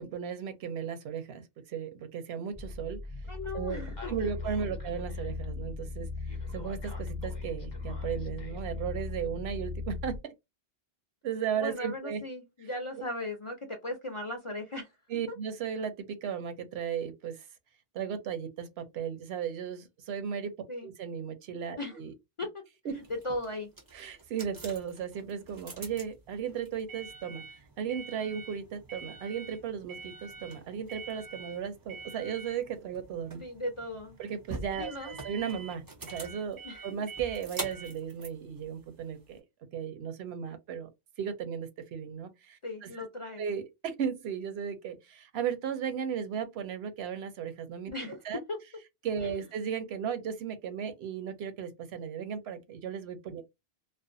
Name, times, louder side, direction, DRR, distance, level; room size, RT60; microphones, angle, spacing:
voice 1, 0.0-3.0 3.5-10.2 11.2-12.2 15.1-17.5 17.9-20.5 20.8-22.1 22.8-22.9 23.9-33.4 34.2-35.8 36.1-39.4 39.7-40.9 41.2-43.0 43.4-48.4 49.0-53.4, right 7 dB, 80° right, 0.8 m, -36 dB
sound 1, 2.5-10.2, left 3 dB, 25° left, 0.8 m, -38 dB
voice 2, 3.3-4.1 4.5-4.6 11.5-14.9 15.3-15.4 20.7-20.9 21.8-22.0 22.4-22.6 22.9-23.7 33.4-34.2 34.8-35.2 35.5-35.6 36.6-36.8 42.6-43.5 47.9-48.2 48.5-48.6 49.2-49.4, left 1 dB, 45° left, 0.4 m, -37 dB
sound 2, 23.0-39.4, right 3 dB, 35° right, 0.4 m, -45 dB
2.4 x 2.1 x 2.5 m
omnidirectional pair, 1.1 m